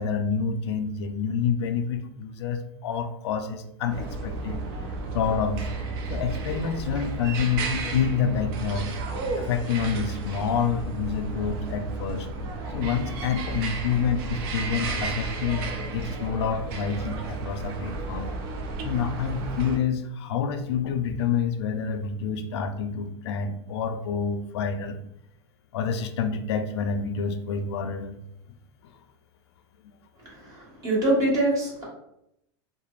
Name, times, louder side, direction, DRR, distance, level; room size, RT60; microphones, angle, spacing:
voice 1, 0.0-4.6 5.1-5.7 6.1-9.0 9.4-12.3 12.7-15.7 15.9-18.3 18.8-25.0 25.7-28.2, left 6 dB, 85° left, 8 dB, 0.4 m, -28 dB
sound 1, 3.9-19.8, right 3 dB, 60° right, 0.5 m, -33 dB
voice 2, 30.2-31.8, right 1 dB, 25° right, -5 dB, 1.3 m, -24 dB
3.0 x 2.0 x 2.4 m, 0.79 s
supercardioid pair, 135°, 14 cm